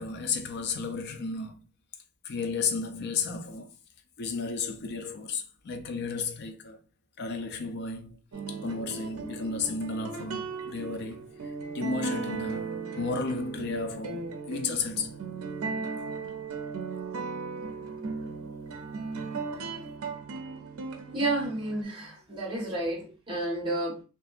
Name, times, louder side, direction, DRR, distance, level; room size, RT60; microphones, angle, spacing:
voice 1, 0.0-1.7 2.2-3.7 4.2-6.8 7.2-8.2 8.5-15.1, left 4 dB, 50° left, 0.4 m, -33 dB
sound 1, 8.3-21.8, right 4 dB, 70° right, 0.5 m, -37 dB
voice 2, 21.1-24.0, right 2 dB, 20° right, 1.3 m, -31 dB
2.7 x 2.4 x 2.4 m
head